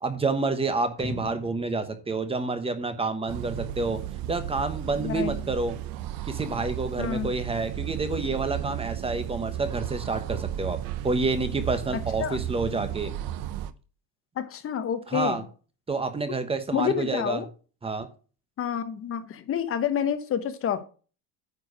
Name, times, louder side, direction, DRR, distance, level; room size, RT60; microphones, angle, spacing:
voice 1, 0.0-4.0 4.3-5.8 6.3-10.8 11.0-13.1 15.1-15.4 15.9-17.4 17.8-18.1, right 3 dB, 10° right, 10 dB, 1.0 m, -28 dB
sound 1, 1.0-3.1 3.5-3.6, equal, 5° left, 1.7 m, -41 dB
sound 2, 3.3-13.7, right 12 dB, 50° right, 0.8 m, -34 dB
voice 2, 5.0-5.4 7.0-7.3 12.2-12.4 14.4-15.4 16.7-17.5 18.6-20.8, left 9 dB, 30° left, 11 dB, 1.0 m, -29 dB
9.6 x 4.7 x 6.2 m, 0.36 s
cardioid pair, 160°, 45 cm